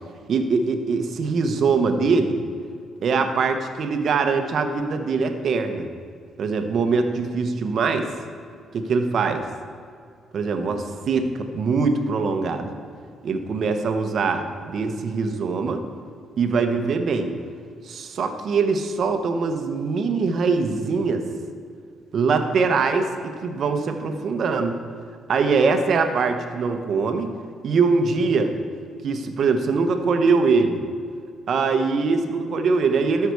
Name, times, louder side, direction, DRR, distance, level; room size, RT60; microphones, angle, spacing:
voice 1, 0.3-2.4 3.0-5.9 6.4-8.1 8.7-9.4 10.3-12.7 13.2-15.8 16.4-17.3 17.9-21.2 22.1-24.7 25.3-27.3 27.6-28.5 29.0-30.8 31.5-33.3, right 4 dB, 60° right, 7 dB, 0.9 m, -22 dB
13.0 x 5.8 x 4.7 m, 2.2 s
cardioid pair, 90°, 0 cm